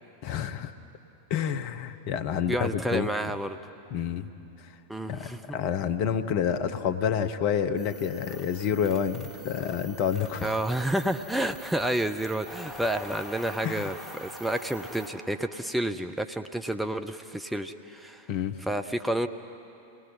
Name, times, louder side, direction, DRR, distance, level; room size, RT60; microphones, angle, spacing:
voice 1, 0.2-0.7 1.3-3.1 3.9-4.3 4.6-4.7 5.1-10.6 13.6-13.9 18.3-18.6, left 8 dB, 45° left, 10 dB, 1.0 m, -29 dB
voice 2, 2.5-3.6 4.9-5.6 10.4-18.3 18.7-19.3, right 1 dB, 5° right, 6 dB, 0.7 m, -30 dB
sound 1, 7.8-15.1, left 1 dB, 15° left, 4.3 m, -45 dB
29.5 x 19.5 x 5.7 m, 2.8 s
figure-of-eight pair, 90°, 0 cm